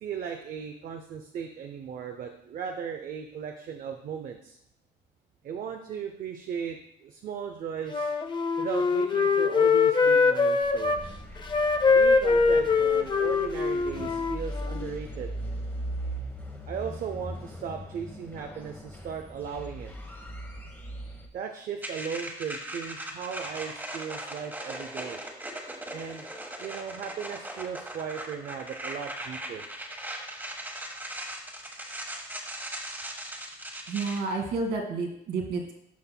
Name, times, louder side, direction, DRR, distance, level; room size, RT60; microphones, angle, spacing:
voice 1, 0.0-4.6 5.4-8.1 8.6-11.2 11.9-15.3 16.7-19.9 21.3-25.2 25.9-26.3 26.6-29.6, right 7 dB, 55° right, 5 dB, 0.7 m, -37 dB
Wind instrument woodwind instrument, 7.9-11.0 11.4-14.9, left 4 dB, 25° left, 0.6 m, -23 dB
sound 1, 10.6-21.3, equal, 10° left, 1.1 m, -39 dB
sound 2, 21.8-34.2, right 1 dB, 10° right, 1.3 m, -39 dB
voice 2, 33.9-35.7, right 3 dB, 75° right, 1 dB, 1.9 m, -30 dB
12.5 x 5.5 x 2.2 m, 0.75 s
cardioid pair, 110°, 17 cm